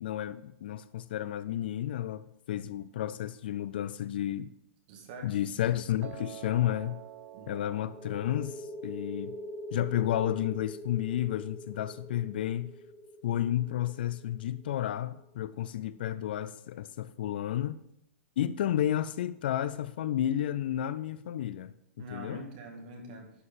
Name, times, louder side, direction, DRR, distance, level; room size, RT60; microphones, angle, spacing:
voice 1, 0.0-4.5 5.2-7.0 7.5-9.4 9.7-12.7 13.2-17.8 18.4-21.7 22.1-22.4, left 11 dB, 40° left, 0.3 m, -31 dB
voice 2, 4.9-5.4 7.3-7.6 22.0-23.3, right 2 dB, 35° right, 1.9 m, -44 dB
Piano, 6.0-12.2, right 12 dB, 65° right, 0.9 m, -50 dB
sound 1, 7.9-15.3, equal, 10° left, 1.2 m, -43 dB
11.0 x 4.5 x 7.3 m
hypercardioid pair, 180°, 8 cm